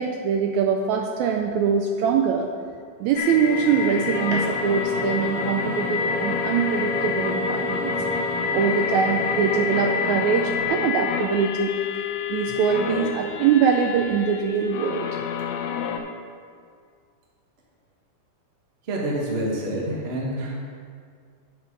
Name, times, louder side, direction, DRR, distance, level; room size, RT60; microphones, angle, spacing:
voice 1, 0.0-2.5 3.0-8.0 8.5-11.8 12.3-15.1, right 6 dB, 80° right, 3 dB, 1.7 m, -23 dB
sound 1, 3.0-10.8, equal, 20° right, 1.6 m, -32 dB
sound 2, 3.2-16.0, left 7 dB, 80° left, 2.0 m, -28 dB
voice 2, 18.9-20.6, right 1 dB, 55° right, -3 dB, 0.7 m, -27 dB
9.4 x 6.1 x 5.2 m, 2.1 s
omnidirectional pair, 3.7 m